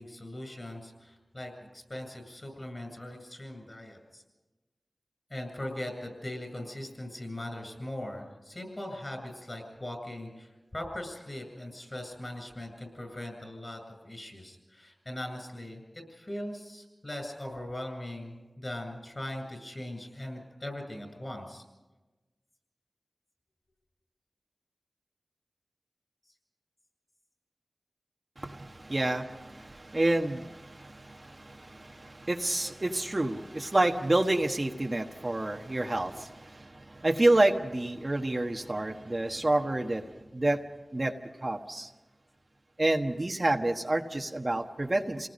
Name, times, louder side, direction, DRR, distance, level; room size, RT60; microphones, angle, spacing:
voice 1, 0.0-4.2 5.3-21.6, left 1 dB, 40° left, 4 dB, 7.8 m, -40 dB
voice 2, 28.4-40.6 40.9-41.9 42.8-45.3, right 2 dB, 45° right, 3 dB, 1.3 m, -29 dB
28.0 x 19.5 x 5.3 m, 1.1 s
cardioid pair, 40°, 0 cm